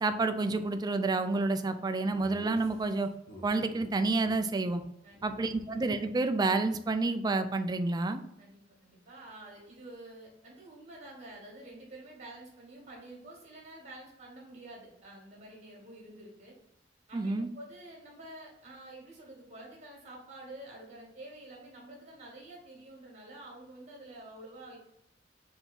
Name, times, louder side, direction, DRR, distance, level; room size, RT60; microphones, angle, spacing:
voice 1, 0.0-3.1 3.4-4.8 5.2-8.2 17.1-17.5, right 3 dB, 20° right, 9 dB, 0.3 m, -29 dB
Laughter, 2.1-3.9 4.2-4.4 4.6-4.8 5.1-6.7, left 1 dB, 55° left, 0.9 m, -51 dB
voice 2, 8.4-16.5 17.1-24.8, right 1 dB, 40° right, -2 dB, 1.6 m, -49 dB
4.0 x 2.9 x 3.7 m, 0.78 s
head